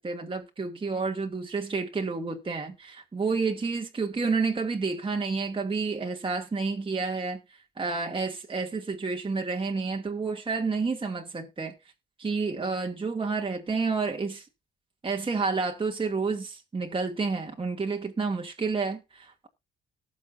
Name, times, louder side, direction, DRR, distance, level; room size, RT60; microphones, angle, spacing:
voice 1, 0.0-7.4 7.8-11.7 12.2-14.4 15.0-19.5, right 4 dB, 25° right, 2.6 m, -30 dB
18.5 x 7.6 x 2.7 m
cardioid pair, 90°, 20 cm